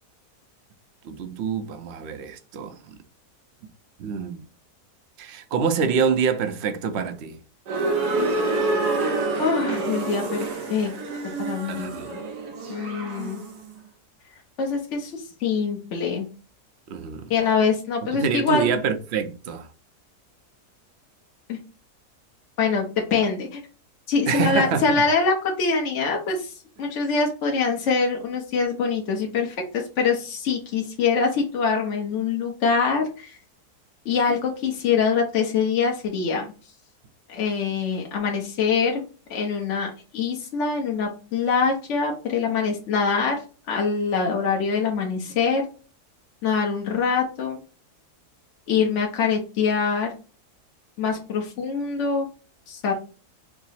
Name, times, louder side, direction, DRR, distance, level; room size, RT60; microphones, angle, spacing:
voice 1, 1.0-2.9 4.0-4.4 5.2-7.4 11.7-12.1 16.9-17.3 18.1-19.7 24.3-24.8, right 6 dB, 60° right, 0.7 m, -26 dB
sound 1, 7.7-13.6, right 3 dB, 85° right, 1.3 m, -27 dB
voice 2, 9.4-10.9 11.4-12.2 12.7-13.4 14.6-16.3 17.3-18.7 21.5-21.6 22.6-23.6 24.1-33.3 34.0-36.5 37.3-39.0 39.3-43.4 43.7-45.6 46.4-47.6 48.7-50.1 51.0-52.3 52.7-52.9, left 5 dB, 60° left, 0.9 m, -24 dB
4.6 x 2.0 x 4.1 m
omnidirectional pair, 1.7 m